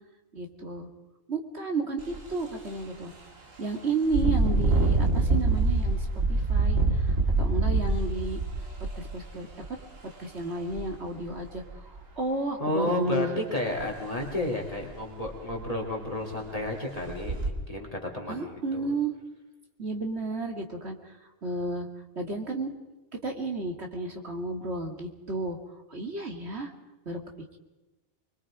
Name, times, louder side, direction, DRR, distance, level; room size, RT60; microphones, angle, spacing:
voice 1, 0.3-0.9 1.3-3.1 3.6-8.4 9.0-9.8 10.2-13.3 18.3-19.1 19.8-21.9 22.2-22.7 23.2-25.6 25.9-26.7 27.1-27.2, right 2 dB, 50° right, 3 dB, 2.5 m, -32 dB
Engine, 2.0-2.2 2.7-2.8 4.1-9.8 10.7-10.8 11.3-12.0 13.8-13.9 14.3-14.4 14.9-15.0 15.3-15.8 16.3-16.5 17.1-17.5, right 3 dB, 65° right, 2.8 m, -25 dB
voice 2, 12.6-18.9, left 2 dB, 25° left, 1 dB, 2.8 m, -32 dB
25.5 x 22.5 x 5.0 m, 1.1 s
omnidirectional pair, 1.4 m